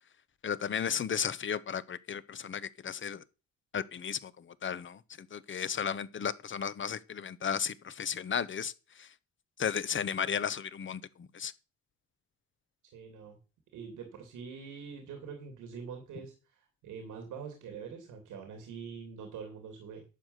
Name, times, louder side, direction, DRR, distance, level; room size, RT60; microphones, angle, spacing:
voice 1, 0.4-3.2 3.7-9.1 9.6-11.5, left 7 dB, 40° left, 1.0 m, -34 dB
voice 2, 12.9-13.4 13.7-20.0, right 6 dB, 85° right, 3.0 m, -44 dB
11.5 x 5.0 x 8.0 m
cardioid pair, 90°, 30 cm